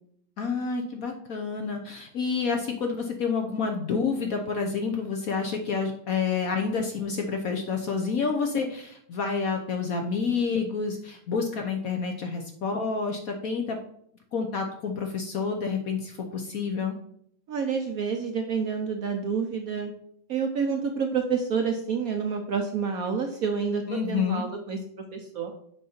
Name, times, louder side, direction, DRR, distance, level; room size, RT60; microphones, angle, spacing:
voice 1, 0.4-13.8 14.3-17.0 23.9-24.4, left 5 dB, 60° left, 3 dB, 1.0 m, -29 dB
voice 2, 17.5-19.9 20.3-23.8 24.1-24.8 25.1-25.5, right 6 dB, 60° right, 4 dB, 1.0 m, -28 dB
6.4 x 5.2 x 4.3 m, 0.68 s
omnidirectional pair, 2.1 m